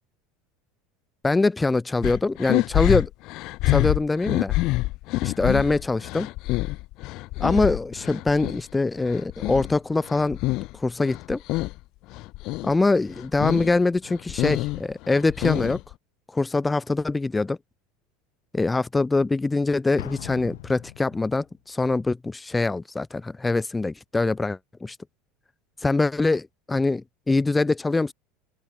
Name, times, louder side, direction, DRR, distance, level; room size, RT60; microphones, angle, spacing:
voice 1, 1.2-3.1 3.6-4.6 5.2-6.3 7.4-10.4 10.7-11.4 12.6-15.8 16.3-17.6 18.5-25.0 25.8-28.1, left 3 dB, 10° left, 0.4 m, -23 dB
sound 1, 2.0-8.6 9.0-10.8 11.0-11.8 12.1-12.7 13.1-13.7 14.1-15.9, left 20 dB, 55° left, 1.1 m, -27 dB
Explosion, 20.0-21.6, left 17 dB, 85° left, 1.4 m, -40 dB
open air
supercardioid pair, 130°, 0 cm